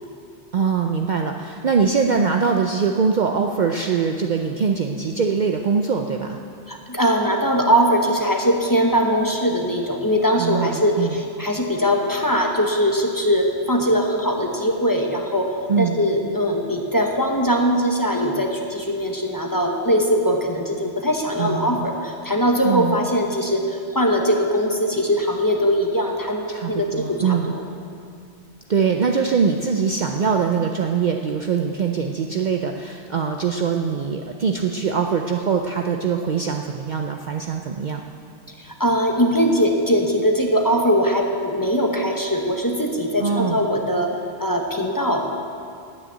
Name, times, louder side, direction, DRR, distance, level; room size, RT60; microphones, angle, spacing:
voice 1, 0.5-6.4 10.3-11.2 15.7-16.0 21.4-21.9 22.6-23.0 26.5-27.5 28.7-38.0 43.2-43.6, right 6 dB, 50° right, 3 dB, 0.6 m, -22 dB
voice 2, 6.7-27.6 38.6-45.2, equal, 20° left, 1 dB, 1.0 m, -21 dB
9.9 x 8.9 x 8.0 m, 2.3 s
omnidirectional pair, 1.2 m